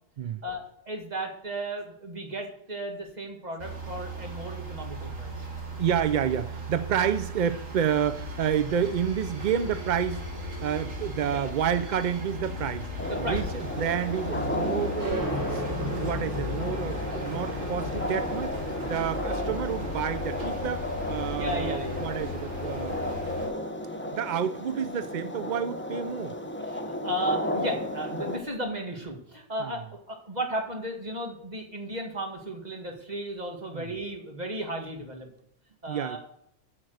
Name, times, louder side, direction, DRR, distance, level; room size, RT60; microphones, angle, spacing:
voice 1, 0.4-5.3 11.2-11.5 13.1-13.4 19.2-19.5 21.4-22.1 26.7-35.3 35.8-36.2, right 1 dB, 35° right, 2 dB, 2.1 m, -35 dB
sound 1, 3.6-23.5, left 1 dB, 90° right, 2.8 m, -37 dB
voice 2, 5.8-18.6 18.8-23.0 24.1-26.4 29.6-29.8 33.7-33.9 35.9-36.2, right 8 dB, 60° right, 12 dB, 0.5 m, -29 dB
sound 2, 13.0-28.4, left 1 dB, 10° left, 0.9 m, -33 dB
sound 3, 15.0-22.3, equal, 15° right, 1.4 m, -38 dB
8.9 x 6.0 x 7.9 m, 0.75 s
omnidirectional pair, 1.3 m